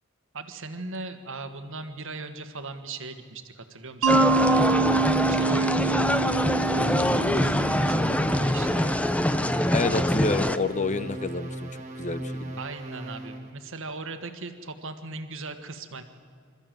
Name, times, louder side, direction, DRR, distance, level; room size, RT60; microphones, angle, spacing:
voice 1, 0.3-9.0 9.7-10.0 12.6-16.0, right 3 dB, 65° right, 8 dB, 1.5 m, -39 dB
Mallet percussion, 4.0-8.8, right 4 dB, 85° right, 1.1 m, -26 dB
sound 1, 4.1-10.6, left 1 dB, 5° left, 0.6 m, -24 dB
sound 2, 5.9-13.5, right 1 dB, 35° right, 2.1 m, -37 dB
voice 2, 9.7-11.7 12.0-12.6, left 3 dB, 35° left, 14 dB, 0.8 m, -28 dB
27.0 x 13.5 x 7.6 m, 2.2 s
head